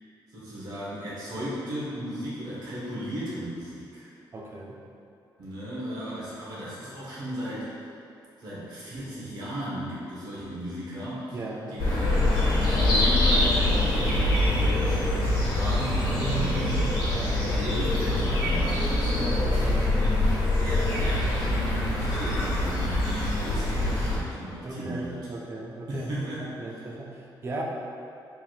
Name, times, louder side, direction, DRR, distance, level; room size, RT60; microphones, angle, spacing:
voice 1, 0.3-4.1 5.4-7.7 8.4-11.4 11.7-12.1 12.6-15.0 15.3-16.9 17.4-19.2 20.0-25.1 25.9-26.8, equal, 55° right, -8 dB, 1.3 m, -35 dB
voice 2, 4.3-4.8 11.3-11.8 16.2-17.9 18.2-18.7 19.2-19.9 24.6-26.1 26.4-27.6, right 2 dB, 30° right, -1 dB, 0.4 m, -37 dB
sound 1, 11.8-24.2, left 1 dB, 65° left, 1.3 m, -24 dB
4.6 x 3.6 x 2.4 m, 2.7 s
wide cardioid pair, 165°, 8 cm